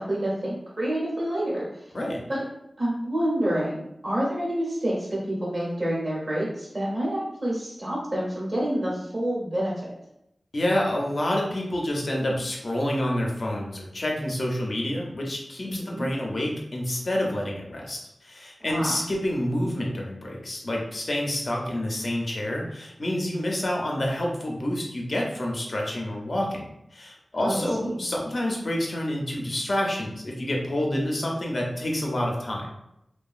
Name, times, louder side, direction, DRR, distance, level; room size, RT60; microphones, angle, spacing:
voice 1, 0.0-1.6 2.3-2.4 2.8-9.9 15.6-16.1 18.7-19.0 27.3-28.0, right 1 dB, 45° right, -5 dB, 1.1 m, -28 dB
voice 2, 10.5-32.7, left 1 dB, 55° left, -1 dB, 0.6 m, -28 dB
2.8 x 2.2 x 2.4 m, 0.81 s
wide cardioid pair, 65°, 0 cm